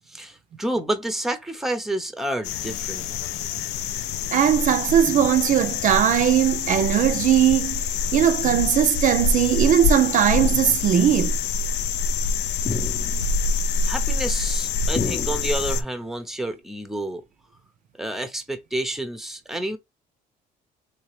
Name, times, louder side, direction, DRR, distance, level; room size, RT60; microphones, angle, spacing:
voice 1, 0.1-3.1 3.4-3.5 13.8-17.2 18.0-19.8, right 1 dB, ahead, 0.6 m, -29 dB
sound 1, 2.4-15.8, left 4 dB, 85° left, 0.4 m, -26 dB
voice 2, 4.3-7.8 8.1-11.4, right 10 dB, 50° right, 0.4 m, -19 dB
sound 2, 8.7-9.1 10.3-11.0 12.6-13.5 14.9-15.9, left 4 dB, 35° left, 0.7 m, -32 dB
3.3 x 2.8 x 3.1 m
cardioid pair, 110°, 17 cm